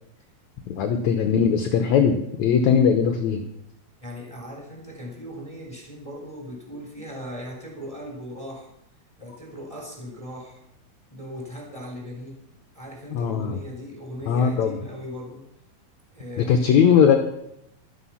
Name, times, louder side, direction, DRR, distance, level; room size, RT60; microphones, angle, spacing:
voice 1, 0.7-3.4 13.1-13.6 14.3-14.8 16.4-17.2, left 7 dB, 70° left, 5 dB, 1.9 m, -20 dB
voice 2, 4.0-8.7 9.2-10.6 11.1-12.4 12.7-15.4 16.1-17.1, equal, 10° left, -1 dB, 3.1 m, -38 dB
13.0 x 12.5 x 5.7 m, 0.76 s
omnidirectional pair, 4.4 m